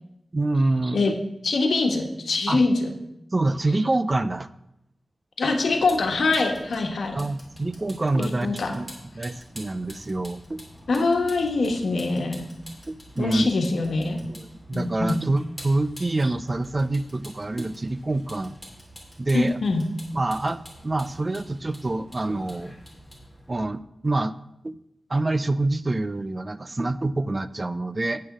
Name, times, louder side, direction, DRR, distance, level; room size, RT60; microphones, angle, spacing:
voice 1, 0.3-1.2 2.5-2.6 3.3-4.5 7.1-8.9 9.2-10.6 11.0-11.1 12.9-13.5 14.3-18.6 19.2-19.6 20.1-22.7 23.5-24.3 24.6-24.8 25.1-28.2, right 2 dB, 30° right, 13 dB, 0.4 m, -26 dB
voice 2, 1.4-2.9 5.4-7.2 8.2-8.8 10.9-12.5 13.2-14.2 14.7-15.2 19.3-19.8, left 3 dB, 80° left, 3 dB, 1.3 m, -23 dB
Vehicle, 5.7-23.7, equal, ahead, 3.3 m, -46 dB
9.4 x 6.3 x 6.0 m, 0.83 s
wide cardioid pair, 110°, 0 cm